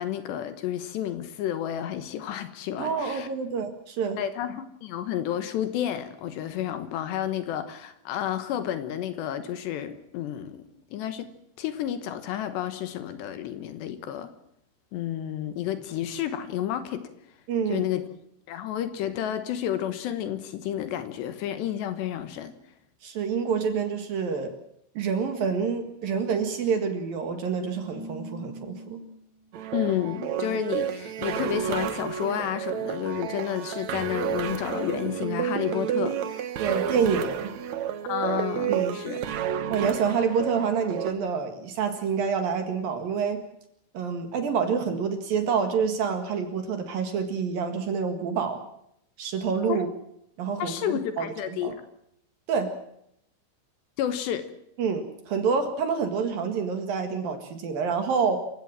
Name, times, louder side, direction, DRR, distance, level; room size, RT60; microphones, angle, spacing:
voice 1, 0.0-3.3 4.2-10.6 10.9-11.3 11.6-14.3 14.9-17.1 17.7-18.0 18.5-22.5 29.7-36.4 38.0-39.2 49.7-49.8 50.6-51.8 54.0-54.5, left 11 dB, 70° left, 11 dB, 3.1 m, -31 dB
voice 2, 2.8-4.2 17.5-17.9 23.0-24.5 24.9-29.0 36.6-37.5 38.7-39.0 39.7-43.4 43.9-48.6 49.2-49.9 50.4-51.8 52.5-52.7 54.8-58.4, right 6 dB, 55° right, 7 dB, 3.1 m, -27 dB
sound 1, 26.0-29.6 30.1-30.4 30.9-31.2 31.9-32.3, right 1 dB, 50° left, 6.9 m, -46 dB
sound 2, 29.5-41.1, right 9 dB, 80° right, 1.6 m, -31 dB
28.0 x 16.5 x 7.5 m, 0.75 s
omnidirectional pair, 5.5 m